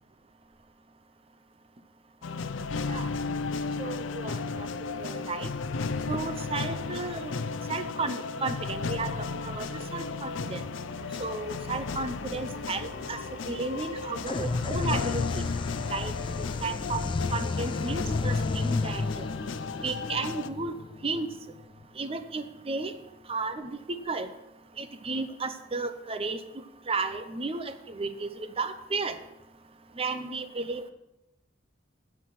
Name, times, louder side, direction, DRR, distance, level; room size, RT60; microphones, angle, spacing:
sound 1, 2.2-20.5, left 4 dB, 75° left, 0.5 m, -34 dB
voice 1, 3.8-4.7 5.0-5.5 6.1-7.3 7.7-9.1 9.5-9.7 9.9-10.6 11.2-13.2 13.5-15.4 15.9-16.1 16.4-17.0 17.3-18.4 18.6-19.3 19.8-20.7 21.0-21.3 22.0-22.9 23.3-24.3 24.8-26.4 26.9-28.3 28.6-29.2 30.0-30.9, right 3 dB, 30° right, 10 dB, 0.7 m, -33 dB
sound 2, 10.9-16.4, right 1 dB, 70° right, 3.1 m, -47 dB
sound 3, 14.3-21.8, left 3 dB, 25° left, 0.3 m, -32 dB
9.6 x 7.4 x 6.1 m, 0.91 s
head